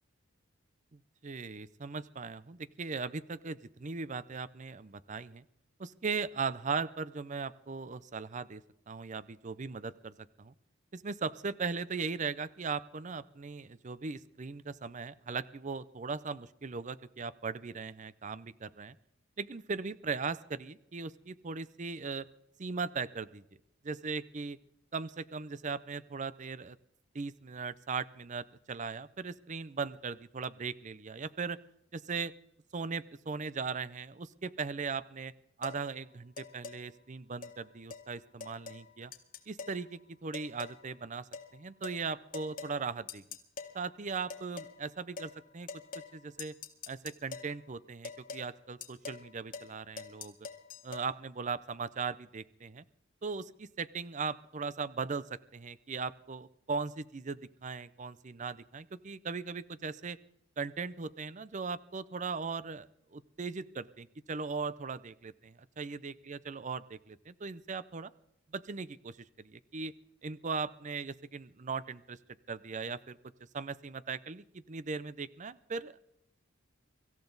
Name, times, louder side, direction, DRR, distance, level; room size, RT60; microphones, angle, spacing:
voice 1, 1.2-5.4 5.8-8.6 8.9-10.5 10.9-19.0 19.4-22.2 22.6-23.4 23.8-24.6 24.9-26.8 27.1-31.6 31.9-32.3 32.7-35.3 35.6-39.1 39.5-43.2 43.7-45.7 46.1-46.5 46.9-50.3 50.8-52.8 53.2-60.2 60.6-68.1 68.5-69.9 70.2-72.2 72.5-73.2 73.5-76.0, right 4 dB, 40° right, 16 dB, 0.6 m, -38 dB
sound 1, 35.6-35.8 36.4-36.8 37.4-37.6 37.9-38.0 38.4-38.8 39.1-39.8 40.3-40.8 41.3-41.5 41.8-42.0 42.3-42.8 43.1-43.7 44.3-44.7 45.2-45.3 45.7-46.1 46.4-47.5 48.0-48.5 48.8-49.3 49.5-49.7 50.0-51.1, left 5 dB, 45° left, 2.0 m, -44 dB
24.5 x 14.5 x 4.0 m, 0.78 s
head